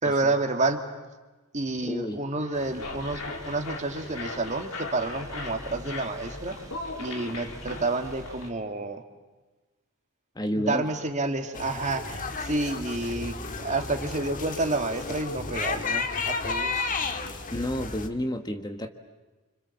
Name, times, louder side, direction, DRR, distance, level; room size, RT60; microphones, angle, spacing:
voice 1, 0.0-0.9 1.5-6.6 7.0-9.0 10.6-16.9, right 2 dB, 35° right, 5 dB, 2.1 m, -29 dB
voice 2, 1.9-2.2 10.4-10.8 17.5-18.9, equal, 20° left, 6 dB, 1.3 m, -30 dB
sound 1, 2.3-8.5, left 3 dB, 65° left, 3.6 m, -39 dB
sound 2, 2.5-8.5, equal, 15° right, 2.2 m, -46 dB
sound 3, 11.5-18.1, left 4 dB, 40° left, 1.7 m, -32 dB
30.0 x 26.5 x 7.2 m, 1.2 s
head